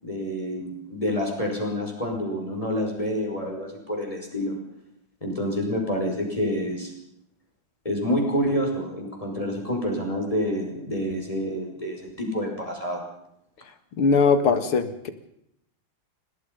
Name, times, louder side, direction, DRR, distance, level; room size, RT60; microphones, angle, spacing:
voice 1, 0.0-4.6 5.2-6.9 7.8-13.0, equal, 15° left, 1 dB, 5.7 m, -28 dB
voice 2, 14.0-15.1, left 4 dB, 85° left, 9 dB, 2.8 m, -20 dB
29.0 x 19.5 x 5.4 m, 0.76 s
omnidirectional pair, 2.3 m